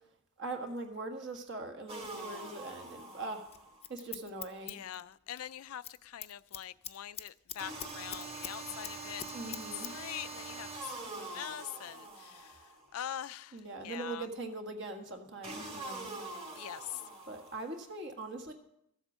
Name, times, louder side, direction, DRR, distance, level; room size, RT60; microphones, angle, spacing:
voice 1, 0.4-3.4 3.9-4.8 9.3-9.9 13.5-16.1 17.3-18.5, right 2 dB, 55° right, 1.6 m, -41 dB
sound 1, 1.9-3.9 7.6-12.9 15.4-17.8, right 2 dB, 30° right, 2.0 m, -44 dB
Scissors, 3.5-5.5 5.7-6.0 6.2-8.5 8.8-9.9 10.2-10.3, left 10 dB, 30° left, 0.5 m, -43 dB
voice 2, 4.6-9.4 9.7-14.3 16.6-17.1, left 11 dB, 75° left, 0.4 m, -44 dB
14.0 x 8.0 x 6.2 m
head